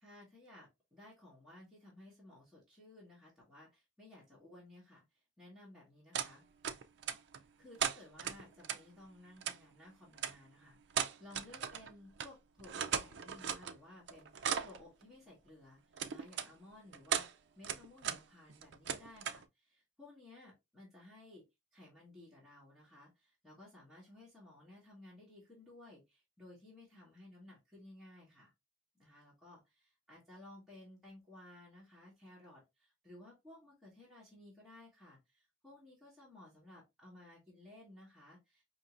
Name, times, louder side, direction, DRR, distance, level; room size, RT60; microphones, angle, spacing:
voice 1, 0.0-6.4 7.4-14.3 14.6-15.8 16.1-17.3 17.6-21.4 21.7-28.5 29.0-38.6, left 1 dB, ahead, -6 dB, 1.7 m, -57 dB
sound 1, 6.1-6.3 6.6-7.4 7.8-8.8 9.4-9.6 10.2-10.3 10.9-11.9 12.2-12.3 12.6-13.8 14.1-14.8 16.0-16.5 16.9-17.3 17.6-18.2 18.5-19.4, right 8 dB, 55° right, 0.4 m, -37 dB
5.3 x 2.9 x 2.5 m, 0.21 s
head